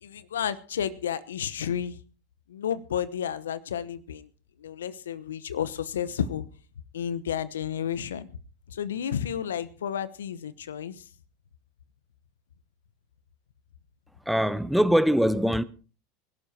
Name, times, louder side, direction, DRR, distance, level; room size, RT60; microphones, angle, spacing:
voice 1, 0.0-2.0 2.5-4.3 4.6-6.5 6.9-8.3 8.7-11.1, left 9 dB, 80° left, 1.0 m, -31 dB
voice 2, 14.3-15.6, equal, ahead, 0.9 m, -22 dB
25.5 x 12.0 x 2.9 m
hypercardioid pair, 85°, 0 cm